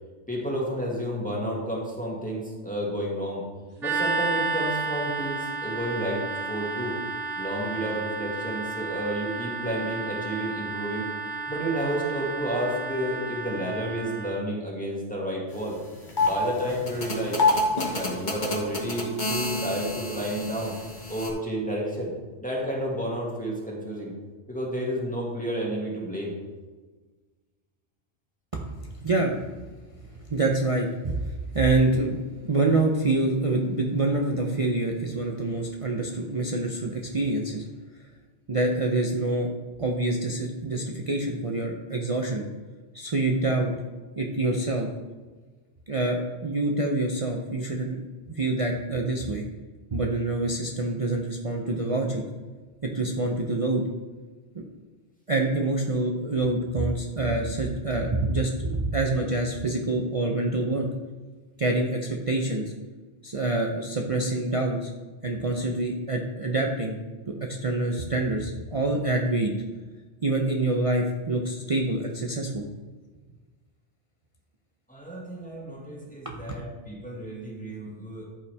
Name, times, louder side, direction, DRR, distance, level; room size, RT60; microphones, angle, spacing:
voice 1, 0.3-3.4 3.8-6.2 6.5-7.0 7.4-11.1 11.5-15.8 16.2-17.4 17.9-20.7 21.1-22.1 22.4-24.1 24.5-26.4 74.9-78.3, right 1 dB, 5° left, -4 dB, 2.0 m, -31 dB
sound 1, 3.8-14.4, right 4 dB, 90° right, 2.2 m, -32 dB
sound 2, 15.5-15.6 15.9-21.3, left 3 dB, 40° left, 1.6 m, -28 dB
voice 2, 29.0-29.4 30.3-37.6 38.5-39.5 39.8-42.5 42.9-43.7 44.2-44.9 45.9-48.0 48.3-49.5 49.9-52.2 52.8-53.8 54.5-54.6 55.3-60.9 61.6-62.6 63.2-64.9 65.2-67.0 67.3-67.4 67.6-69.5 70.2-72.7 76.2-76.3, right 2 dB, 35° right, 0 dB, 0.7 m, -26 dB
13.5 x 5.6 x 3.5 m, 1.3 s
omnidirectional pair, 1.2 m